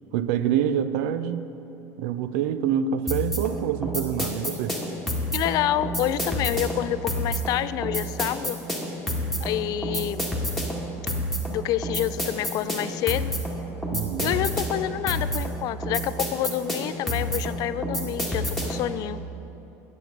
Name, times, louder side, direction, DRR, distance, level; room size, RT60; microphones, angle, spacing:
voice 1, 0.1-1.5 2.0-4.8 13.9-14.4, right 9 dB, 80° right, 12 dB, 0.5 m, -26 dB
sound 1, 3.1-18.9, equal, 5° left, 1.7 m, -29 dB
voice 2, 5.3-8.6 9.4-10.3 11.5-13.3 14.2-19.2, left 13 dB, 55° left, 15 dB, 0.3 m, -28 dB
9.3 x 7.8 x 5.2 m, 3.0 s
supercardioid pair, 110°, 8 cm